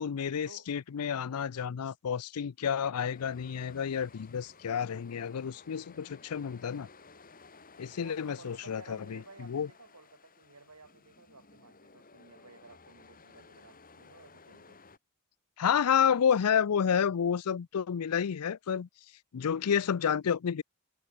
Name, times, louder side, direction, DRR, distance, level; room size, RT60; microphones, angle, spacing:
voice 1, 0.0-6.9 7.8-9.2 9.5-9.7 15.6-18.9 19.3-20.6, left 7 dB, 85° left, 0.5 m, -30 dB
sound 1, 3.0-15.0, left 4 dB, 40° left, 3.6 m, -56 dB
voice 2, 8.0-14.8, right 3 dB, 85° right, 4.6 m, -55 dB
head